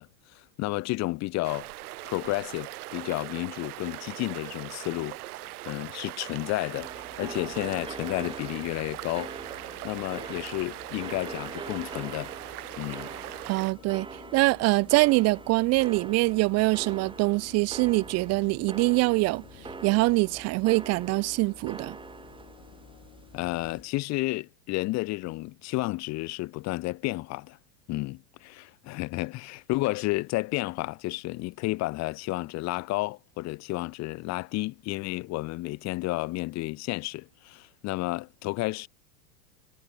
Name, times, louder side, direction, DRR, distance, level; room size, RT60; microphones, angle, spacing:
voice 1, 0.0-1.7 2.0-5.2 5.7-6.9 7.2-9.3 9.8-12.3 12.8-13.1 23.3-27.6 27.9-38.9, left 20 dB, 35° left, 0.8 m, -31 dB
sound 1, 1.4-13.7, right 18 dB, 75° right, 1.0 m, -40 dB
sound 2, 6.6-23.9, left 21 dB, 65° left, 3.0 m, -52 dB
sound 3, 6.8-23.8, right 4 dB, 10° right, 1.5 m, -44 dB
voice 2, 13.5-19.4 19.8-22.0, right 23 dB, 35° right, 0.6 m, -24 dB
hypercardioid pair, 115°, 45 cm